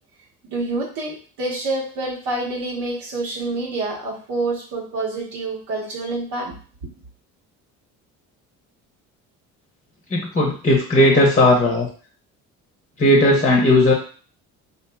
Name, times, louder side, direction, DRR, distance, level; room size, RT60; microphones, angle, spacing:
voice 1, 0.4-6.5, right 2 dB, 80° right, -3 dB, 1.2 m, -27 dB
voice 2, 10.1-11.9 13.0-13.9, left 1 dB, 20° left, 0 dB, 0.7 m, -16 dB
2.9 x 2.5 x 2.2 m, 0.40 s
supercardioid pair, 80°, 34 cm